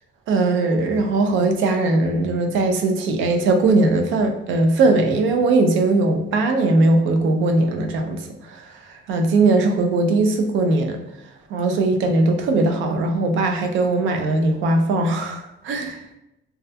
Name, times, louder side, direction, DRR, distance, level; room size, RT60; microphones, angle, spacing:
voice 1, 0.3-8.8 9.1-11.0 11.5-16.0, right 2 dB, 80° right, 5 dB, 0.4 m, -19 dB
2.3 x 2.1 x 2.6 m, 0.84 s
cardioid pair, 180°, 20 cm